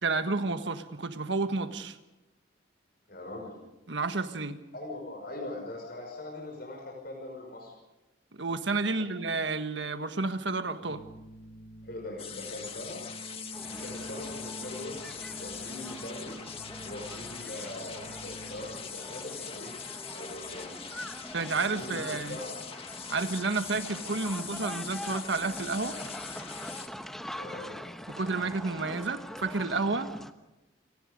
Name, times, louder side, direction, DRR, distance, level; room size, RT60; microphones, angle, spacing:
voice 1, 0.0-2.0 3.9-4.6 8.3-11.0 21.3-22.4 23.1-26.0 28.1-30.1, right 3 dB, 70° right, 8 dB, 1.5 m, -31 dB
voice 2, 3.1-3.6 4.7-7.7 8.8-9.1 11.8-13.0 13.7-15.0 15.4-16.4 16.8-19.7 20.1-20.7 21.5-22.6 27.4-27.8, left 2 dB, 50° left, 1 dB, 5.7 m, -41 dB
Keyboard (musical), 10.8-19.2, equal, 85° left, 6.4 m, -48 dB
sound 1, 12.2-26.9, left 7 dB, 30° left, 1.6 m, -42 dB
sound 2, 13.5-30.3, equal, ahead, 1.0 m, -44 dB
28.5 x 19.0 x 5.3 m, 0.99 s
head